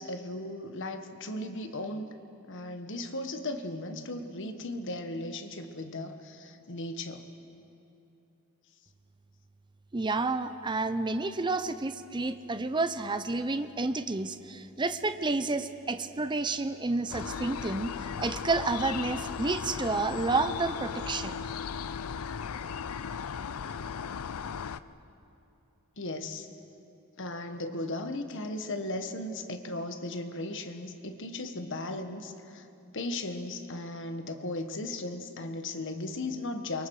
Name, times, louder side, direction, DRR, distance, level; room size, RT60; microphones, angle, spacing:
voice 1, 0.0-2.1 2.5-7.3 26.0-26.5 27.2-32.7 32.9-36.9, left 2 dB, 60° left, 7 dB, 1.4 m, -36 dB
voice 2, 9.9-21.4, right 3 dB, 20° right, 10 dB, 0.6 m, -30 dB
sound 1, 17.1-24.8, left 7 dB, 90° left, 0.5 m, -36 dB
28.5 x 24.0 x 4.8 m, 2.8 s
head